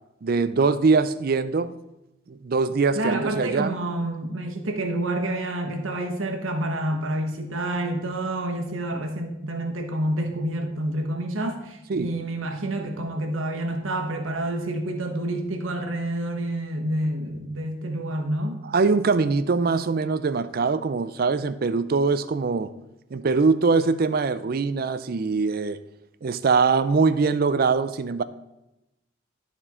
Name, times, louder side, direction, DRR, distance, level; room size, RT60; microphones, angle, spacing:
voice 1, 0.2-1.7 2.3-3.8 11.9-12.1 18.6-22.7 23.1-25.8 26.2-28.2, right 4 dB, 50° right, 14 dB, 0.4 m, -22 dB
voice 2, 3.0-18.6, right 1 dB, 80° right, 4 dB, 1.2 m, -28 dB
12.5 x 4.4 x 4.3 m, 0.94 s
head